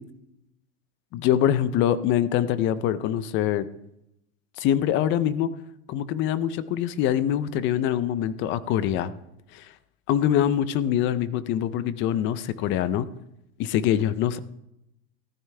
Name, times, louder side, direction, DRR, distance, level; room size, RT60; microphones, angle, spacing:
voice 1, 1.1-3.7 4.6-5.5 5.9-9.1 9.5-9.7 10.1-13.1 13.6-14.4, left 10 dB, 30° left, 16 dB, 0.5 m, -24 dB
14.5 x 12.0 x 3.3 m, 0.83 s
supercardioid pair, 150°, 42 cm